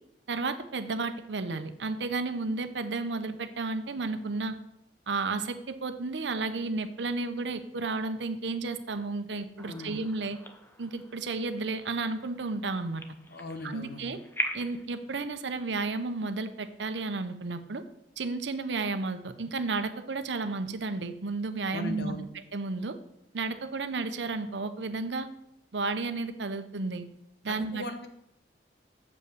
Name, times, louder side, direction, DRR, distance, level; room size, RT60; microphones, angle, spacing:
voice 1, 0.3-4.6 5.1-10.4 10.8-13.0 13.6-14.2 14.5-17.8 18.2-22.3 22.5-23.0 23.3-25.3 25.7-27.0 27.4-27.8, right 3 dB, 75° right, 10 dB, 0.7 m, -32 dB
voice 2, 9.6-10.0 13.3-14.2 21.7-22.2 27.5-28.1, left 1 dB, 65° left, 7 dB, 1.0 m, -38 dB
sound 1, 9.6-14.9, left 1 dB, 15° left, 0.8 m, -41 dB
7.4 x 5.5 x 6.6 m, 0.82 s
head